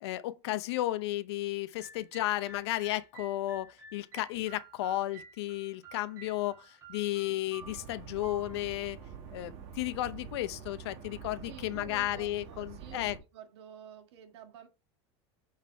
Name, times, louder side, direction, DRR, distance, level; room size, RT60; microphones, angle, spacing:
voice 1, 0.0-9.0 9.3-13.2, left 15 dB, 75° left, 0.7 m, -33 dB
sound 1, 1.8-9.8, right 3 dB, 20° right, 2.0 m, -52 dB
sound 2, 7.6-13.2, right 7 dB, 50° right, 1.4 m, -46 dB
voice 2, 11.4-14.7, right 8 dB, 80° right, 1.8 m, -50 dB
7.5 x 4.1 x 4.3 m
supercardioid pair, 145°, 14 cm